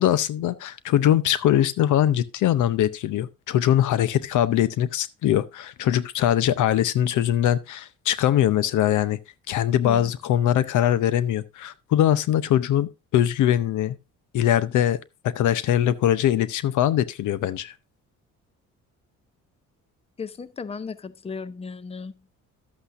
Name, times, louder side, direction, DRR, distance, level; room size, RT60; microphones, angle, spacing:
voice 1, 0.0-9.2 9.5-14.0 14.3-15.0 15.2-17.7, left 11 dB, 80° left, 0.7 m, -22 dB
voice 2, 20.2-22.1, left 5 dB, 20° left, 0.6 m, -35 dB
12.0 x 8.2 x 2.5 m
cardioid pair, 90°, 30 cm